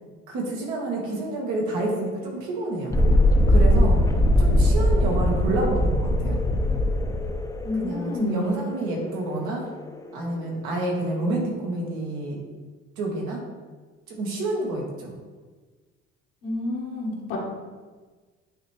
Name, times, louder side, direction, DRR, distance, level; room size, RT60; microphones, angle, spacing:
voice 1, 0.3-3.0 3.5-4.0 4.4-6.4 7.7-9.6 10.1-12.4 13.0-13.4 14.1-15.1, right 2 dB, 75° right, -1 dB, 1.8 m, -28 dB
Thunderstorm, 2.9-10.4, left 1 dB, 10° left, 0.6 m, -21 dB
voice 2, 7.6-8.5 16.4-17.4, left 3 dB, 85° left, -2 dB, 1.6 m, -29 dB
9.1 x 3.1 x 3.3 m, 1.4 s
supercardioid pair, 80°, 30 cm